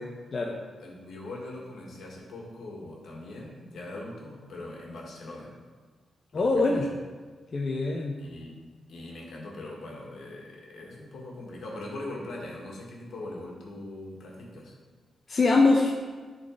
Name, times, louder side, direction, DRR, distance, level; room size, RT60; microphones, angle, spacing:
voice 1, 0.8-5.5 6.3-6.9 8.2-8.6 8.9-14.7, left 2 dB, 70° left, -2 dB, 1.7 m, -41 dB
voice 2, 6.3-6.9 7.5-8.2 15.3-15.9, left 3 dB, 35° left, -1 dB, 0.6 m, -23 dB
10.5 x 4.0 x 3.8 m, 1.4 s
wide cardioid pair, 145°, 0 cm